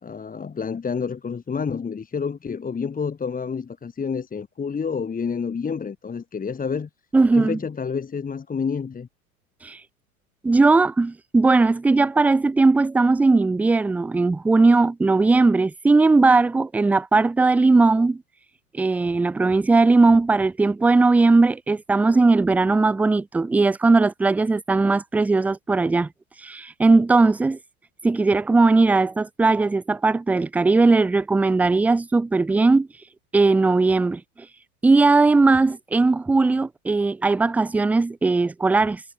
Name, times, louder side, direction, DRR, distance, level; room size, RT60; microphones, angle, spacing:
voice 1, 0.0-6.9 7.3-9.1, left 6 dB, 20° left, 2.2 m, -29 dB
voice 2, 7.1-7.6 9.6-9.8 10.4-18.2 18.7-26.1 26.4-27.6 28.0-32.9 33.3-34.2 34.8-39.0, right 3 dB, 5° right, 0.3 m, -18 dB
figure-of-eight pair, 80°, 42 cm